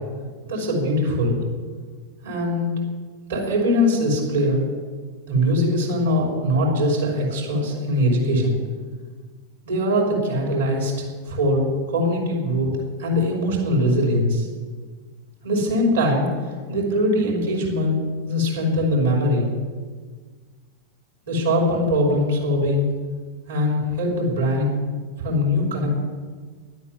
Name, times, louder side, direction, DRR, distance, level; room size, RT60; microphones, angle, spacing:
voice 1, 0.5-1.4 2.2-2.8 3.3-4.6 5.3-8.6 9.6-12.7 13.0-14.5 15.4-18.0 18.2-19.5 21.3-22.9 23.5-24.7 25.2-25.9, left 1 dB, 70° right, -3 dB, 5.2 m, -21 dB
11.5 x 9.4 x 9.6 m, 1.5 s
figure-of-eight pair, 90°, 0 cm